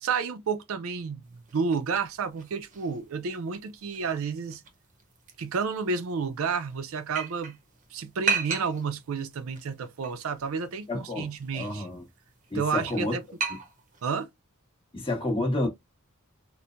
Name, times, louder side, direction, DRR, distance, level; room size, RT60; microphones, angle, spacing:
voice 1, 0.0-4.6 5.4-7.6 7.9-11.9 12.5-13.2 14.0-14.3, right 5 dB, 65° right, 0.4 m, -31 dB
sound 1, 1.2-14.2, right 5 dB, 35° right, 0.7 m, -38 dB
voice 2, 10.9-12.0 12.5-13.1 14.9-15.7, left 1 dB, 25° left, 1.2 m, -29 dB
4.3 x 2.1 x 2.5 m
head